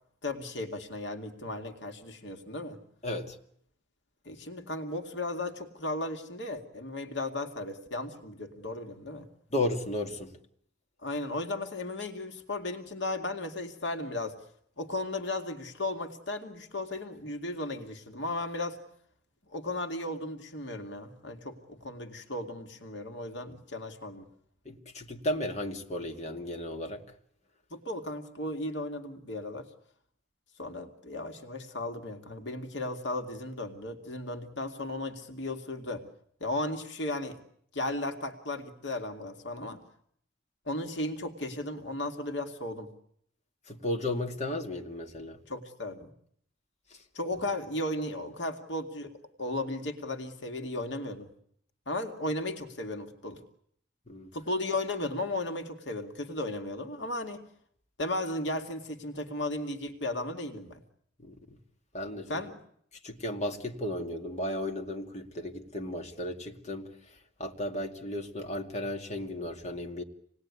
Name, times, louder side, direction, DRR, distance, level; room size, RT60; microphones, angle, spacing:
voice 1, 0.2-2.8 4.2-9.3 11.0-14.4 14.8-18.8 19.5-24.3 27.7-29.7 30.6-36.0 36.4-37.4 37.7-39.8 40.7-42.9 45.5-46.1 47.1-51.3 51.9-53.4 54.3-57.5 58.0-60.8 62.3-62.5, left 2 dB, 70° left, 2.3 m, -35 dB
voice 2, 3.0-3.4 9.5-10.3 24.6-27.0 43.7-45.4 46.9-47.0 54.1-54.3 61.2-61.6 61.9-62.4 63.0-70.0, left 1 dB, 35° left, 2.4 m, -34 dB
27.5 x 19.5 x 9.7 m
head